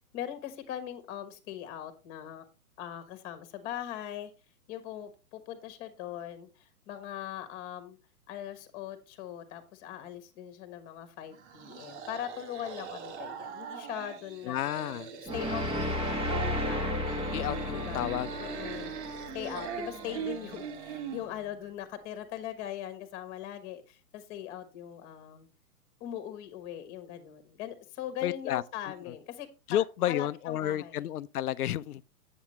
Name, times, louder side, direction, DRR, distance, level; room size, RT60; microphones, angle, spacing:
voice 1, 0.1-2.4 2.8-4.3 4.7-8.0 8.3-14.5 14.8-17.3 17.7-18.1 18.4-19.0 19.3-25.5 26.0-31.0, left 11 dB, 30° left, 1.4 m, -41 dB
sound 1, 11.3-21.3, right 7 dB, 45° right, 1.4 m, -42 dB
voice 2, 14.4-15.1 17.3-18.3 28.2-28.6 29.7-32.0, left 12 dB, 70° left, 0.6 m, -31 dB
sound 2, 15.3-20.3, left 1 dB, 10° right, 1.2 m, -34 dB
Wind instrument woodwind instrument, 16.4-21.7, right 6 dB, 85° right, 2.1 m, -46 dB
8.4 x 7.2 x 3.1 m
hypercardioid pair, 130°, 47 cm